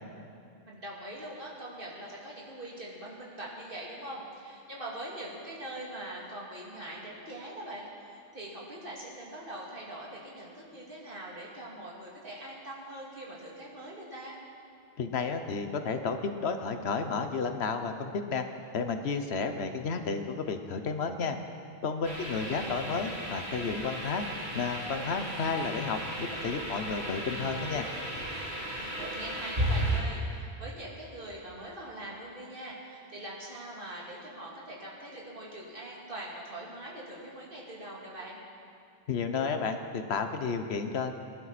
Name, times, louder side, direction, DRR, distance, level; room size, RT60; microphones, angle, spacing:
voice 1, 0.7-14.4 22.1-22.7 28.9-38.4, right 1 dB, 60° right, -5 dB, 2.8 m, -42 dB
voice 2, 15.0-18.4 18.7-21.4 21.8-24.3 24.5-27.8 39.1-41.1, left 5 dB, 85° left, 7 dB, 1.2 m, -32 dB
sound 1, 22.0-30.0, right 1 dB, 90° right, 3.5 m, -35 dB
20.5 x 11.5 x 4.2 m, 2.5 s
omnidirectional pair, 1.0 m